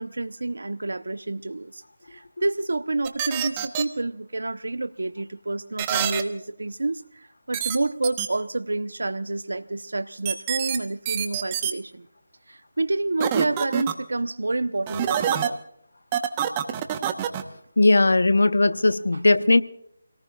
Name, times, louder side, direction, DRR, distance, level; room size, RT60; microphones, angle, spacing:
voice 1, 0.0-1.8 2.1-12.1 12.5-15.6 19.1-19.2, right 2 dB, 80° right, 0.8 m, -29 dB
sound 1, 3.0-3.8 5.8-6.2 7.5-7.8 8.0-8.3 10.2-10.8 11.0-11.7 13.2-13.9 14.9-15.5 16.1-17.4, right 10 dB, 20° right, 1.0 m, -26 dB
voice 2, 17.8-19.6, left 2 dB, 80° left, 0.8 m, -18 dB
28.5 x 18.5 x 2.4 m
figure-of-eight pair, 165°, 0 cm